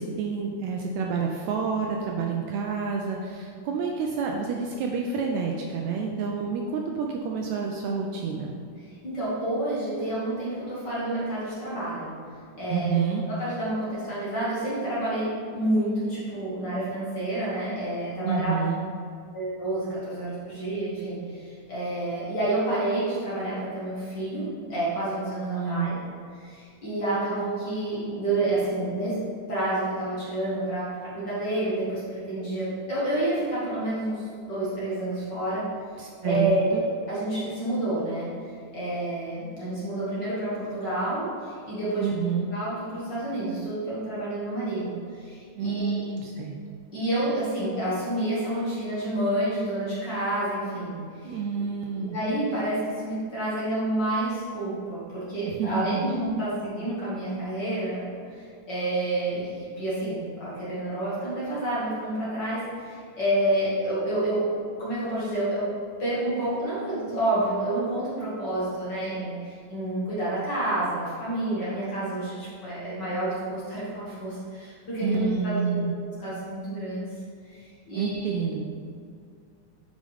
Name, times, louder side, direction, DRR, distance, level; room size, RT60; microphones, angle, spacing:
voice 1, 0.0-8.5 12.7-13.2 18.2-18.8 25.4-25.9 36.0-36.8 42.0-42.5 45.6-46.6 51.2-52.2 55.6-56.1 75.0-75.9 77.9-78.7, right 5 dB, 80° right, 1 dB, 1.7 m, -28 dB
voice 2, 8.8-12.1 12.6-13.0 13.3-18.7 19.3-26.0 26.4-29.2 29.5-35.6 36.2-38.3 38.7-42.1 42.5-46.0 46.9-51.4 51.9-64.5 64.8-65.7 66.0-77.1 77.4-77.6 77.9-78.4, right 1 dB, 40° left, -9 dB, 1.9 m, -29 dB
9.1 x 5.0 x 3.5 m, 2.3 s
omnidirectional pair, 3.6 m